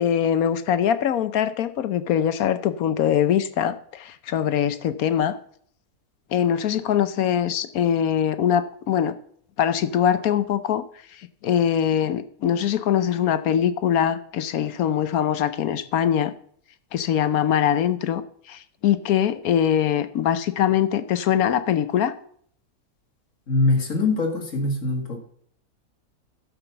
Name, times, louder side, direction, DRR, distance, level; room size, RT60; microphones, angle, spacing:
voice 1, 0.0-5.4 6.3-9.1 9.6-10.8 11.1-16.3 16.9-22.1, left 9 dB, 75° left, 12 dB, 1.1 m, -22 dB
voice 2, 23.5-25.2, left 2 dB, 55° left, 3 dB, 2.3 m, -23 dB
11.5 x 6.1 x 6.8 m, 0.62 s
omnidirectional pair, 1.6 m